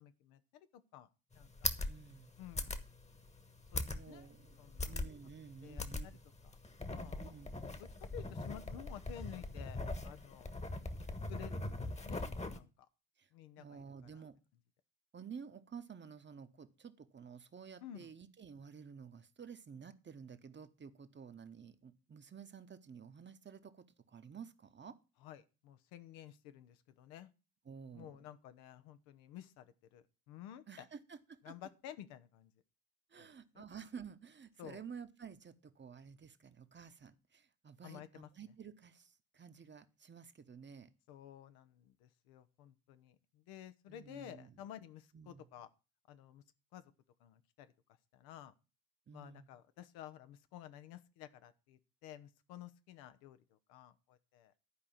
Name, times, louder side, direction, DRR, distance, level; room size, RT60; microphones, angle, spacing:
voice 1, 0.0-1.7 2.4-2.8 3.7-4.3 4.6-4.9 5.6-6.2 6.8-7.3 7.8-10.5 11.3-11.7 12.0-12.3 12.5-12.7 13.3-14.2 17.8-18.1 25.2-27.3 27.9-30.8 31.4-32.5 33.2-33.3 33.5-33.7 34.6-34.8 37.8-38.3 41.1-45.7 46.1-46.4 46.7-46.8 47.2-47.7 48.1-48.5 49.1-54.5, left 11 dB, 70° left, 0.9 m, -53 dB
sound 1, 1.3-12.6, left 2 dB, 15° left, 1.4 m, -41 dB
voice 2, 1.8-2.3 3.8-4.6 4.9-6.1 7.2-7.5 13.2-13.3 13.6-14.4 15.1-25.0 27.6-28.3 30.7-31.5 33.1-40.9 43.9-44.6 45.1-45.5 49.1-49.5, right 6 dB, 30° right, 1.1 m, -52 dB
11.5 x 4.9 x 7.1 m
hypercardioid pair, 55°, 39 cm